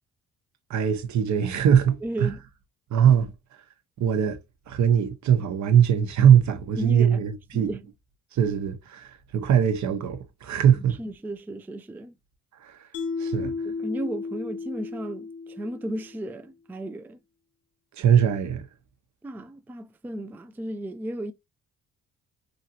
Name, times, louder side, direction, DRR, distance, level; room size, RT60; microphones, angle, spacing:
voice 1, 0.7-2.3 2.9-3.3 4.0-4.4 4.7-7.7 8.3-11.0 12.6-12.8 13.2-13.5 17.9-18.7, right 8 dB, 70° right, 0.9 m, -21 dB
voice 2, 2.0-2.4 6.8-7.2 7.5-7.8 10.8-12.1 13.4-17.2 19.2-21.3, right 1 dB, 5° right, 0.3 m, -34 dB
Mallet percussion, 12.9-16.2, left 4 dB, 75° left, 0.5 m, -33 dB
3.1 x 2.7 x 2.8 m
cardioid pair, 90°, 30 cm